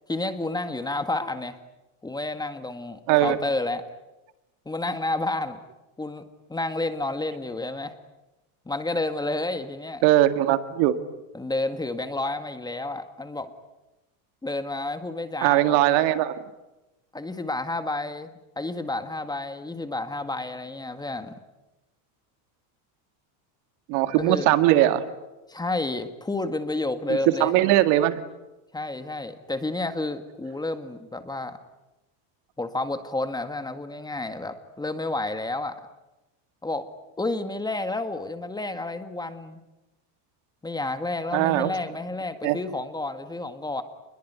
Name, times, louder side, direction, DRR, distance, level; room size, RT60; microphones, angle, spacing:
voice 1, 0.1-1.6 2.0-3.8 4.7-5.6 6.0-6.2 6.5-7.9 8.7-10.0 11.3-13.5 14.4-16.1 17.1-21.3 24.2-24.5 25.5-27.6 28.7-31.6 32.6-35.8 36.6-36.9 37.2-39.6 40.6-43.8, left 2 dB, 10° left, 9 dB, 1.8 m, -30 dB
voice 2, 3.1-3.4 10.0-11.0 15.4-16.3 23.9-25.0 27.1-28.2 41.3-41.7 42.4-42.6, right 14 dB, 65° right, 11 dB, 2.1 m, -20 dB
28.5 x 21.5 x 9.5 m, 1.0 s
cardioid pair, 140°, 44 cm